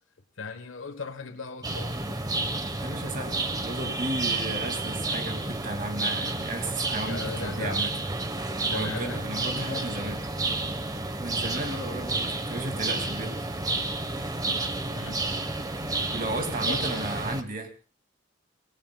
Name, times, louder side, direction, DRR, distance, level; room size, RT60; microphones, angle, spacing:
voice 1, 0.4-2.1 7.0-7.9 8.7-10.2 14.9-15.2 16.7-17.0, left 4 dB, 80° left, 1.2 m, -38 dB
sound 1, 1.6-17.4, right 2 dB, 20° right, 1.1 m, -31 dB
voice 2, 2.8-7.9 8.7-10.2 11.2-13.3 16.1-17.7, right 2 dB, 45° right, 2.4 m, -34 dB
26.5 x 19.5 x 2.3 m
head